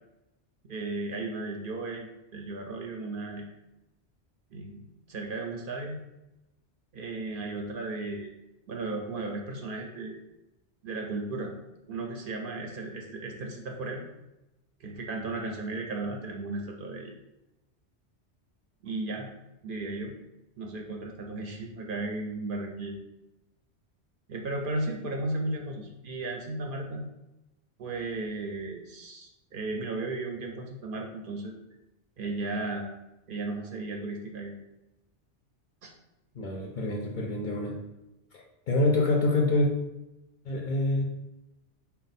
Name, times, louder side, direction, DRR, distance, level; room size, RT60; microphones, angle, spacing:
voice 1, 0.7-2.1 2.3-3.4 4.5-6.0 6.9-8.3 8.7-10.1 10.8-11.5 11.9-14.0 14.8-17.1 18.8-19.3 19.6-20.1 20.6-23.0 24.3-27.0 27.8-31.5 32.2-32.9 33.3-34.6 35.8-35.9, right 2 dB, 60° right, 1 dB, 0.7 m, -35 dB
voice 2, 36.4-37.7 38.3-39.7 40.5-41.0, left 2 dB, 55° left, 0 dB, 0.6 m, -26 dB
4.2 x 2.3 x 4.1 m, 0.96 s
omnidirectional pair, 1.2 m